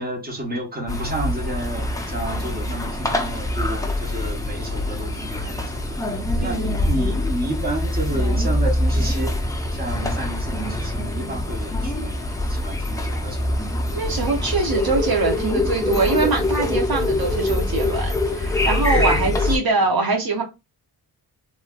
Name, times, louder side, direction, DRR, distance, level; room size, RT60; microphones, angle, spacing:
voice 1, 0.0-5.9 6.1-9.3 9.7-12.2 12.5-13.5 17.1-17.3 18.8-19.2, right 1 dB, 25° right, 0.9 m, -31 dB
sound 1, 0.9-19.6, left 1 dB, 10° left, 0.3 m, -24 dB
voice 2, 6.4-6.7 13.9-20.4, right 3 dB, 60° right, 0.7 m, -23 dB
3.1 x 2.6 x 2.2 m
wide cardioid pair, 125°, 41 cm